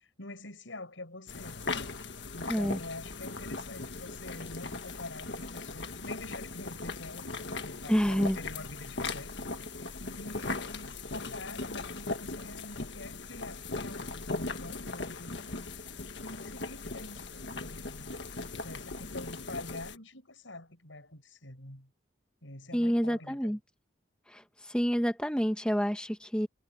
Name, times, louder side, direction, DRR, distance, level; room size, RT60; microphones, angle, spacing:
voice 1, 0.2-1.6 2.3-9.7 10.0-15.7 16.2-18.1 18.6-21.9 22.4-23.5, left 2 dB, 85° left, 6.4 m, -46 dB
sound 1, 1.3-20.0, left 3 dB, 65° left, 1.6 m, -39 dB
voice 2, 7.9-8.4 22.7-23.6 24.3-26.5, equal, 5° left, 1.5 m, -28 dB
head